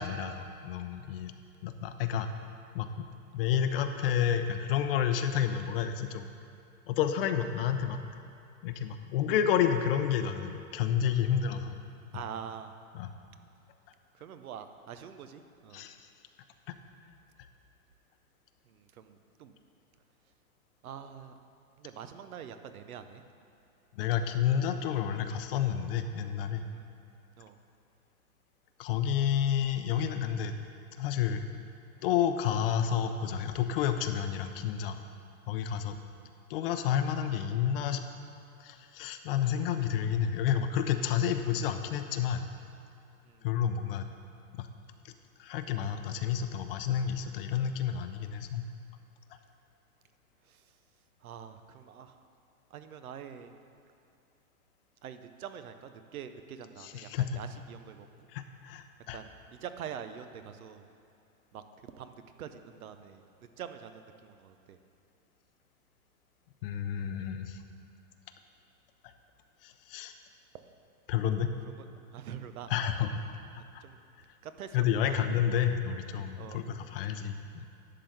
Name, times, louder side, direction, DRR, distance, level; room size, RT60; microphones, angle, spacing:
voice 1, 0.0-1.3 1.6-2.3 2.7-3.0 3.3-6.3 6.9-8.0 8.6-11.7 12.9-13.1 15.7-16.1 16.7-16.8 23.9-26.6 28.8-30.5 31.0-31.4 32.0-35.0 35.5-35.9 36.5-38.0 38.6-42.4 43.4-44.1 44.5-44.7 45.0-45.1 45.4-48.6 56.8-57.4 58.3-59.2 66.6-67.6 69.0-69.1 69.6-70.1 71.1-71.5 72.7-73.2 73.7-73.8 74.7-77.7, left 9 dB, 40° left, 8 dB, 0.6 m, -30 dB
voice 2, 11.2-11.5 12.1-12.7 14.1-15.8 18.7-19.5 20.8-21.4 21.8-23.2 26.7-26.9 27.4-27.6 35.8-36.0 43.2-43.4 50.5-50.6 51.2-52.2 52.7-53.5 55.0-58.1 59.1-60.9 61.5-61.6 61.9-64.8 72.1-72.7 73.6-74.0 74.4-75.1 76.4-76.6, right 8 dB, 75° right, 9 dB, 0.8 m, -45 dB
11.5 x 3.9 x 7.7 m, 2.5 s
hypercardioid pair, 130°, 43 cm